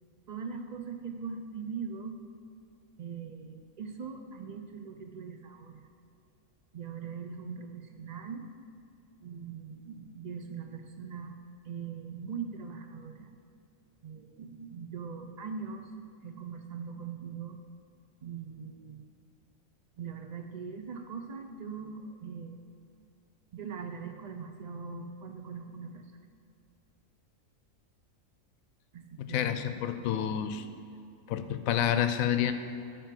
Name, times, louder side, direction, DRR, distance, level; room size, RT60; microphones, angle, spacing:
voice 1, 0.3-2.2 3.0-5.9 6.7-8.5 9.2-13.4 14.0-15.9 16.2-17.6 18.2-19.0 20.0-22.6 23.5-26.1 28.9-29.7, right 6 dB, 65° right, 6 dB, 0.4 m, -41 dB
voice 2, 29.2-30.6 31.3-32.5, left 10 dB, 85° left, 9 dB, 1.0 m, -29 dB
10.0 x 4.6 x 7.6 m, 2.5 s
omnidirectional pair, 1.4 m